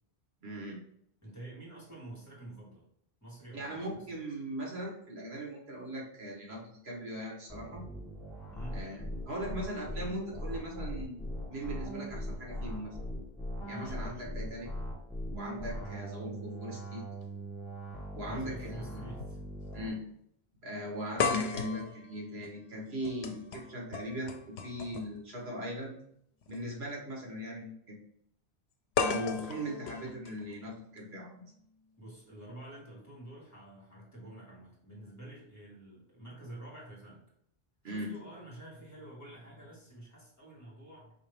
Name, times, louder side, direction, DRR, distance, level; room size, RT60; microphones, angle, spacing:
voice 1, 0.4-0.8 3.5-7.8 8.7-11.2 11.5-13.0 13.7-14.7 15.3-17.0 18.1-19.0 19.7-20.0 20.6-25.9 26.5-28.0 29.0-31.4 37.8-38.1, right 1 dB, 75° right, -1 dB, 1.5 m, -39 dB
voice 2, 1.2-2.8 3.2-4.1 8.5-8.8 13.7-13.9 18.2-19.4 29.2-29.5 32.0-37.2 37.8-41.1, right 1 dB, 15° left, -5 dB, 1.7 m, -48 dB
sound 1, 7.5-19.9, equal, ahead, 1.1 m, -40 dB
sound 2, 18.0-18.1 19.2-19.4 19.7-19.8 21.2-25.2 26.4-26.6 29.0-31.0, left 5 dB, 90° left, 0.8 m, -35 dB
4.8 x 2.9 x 3.4 m, 0.70 s
omnidirectional pair, 1.1 m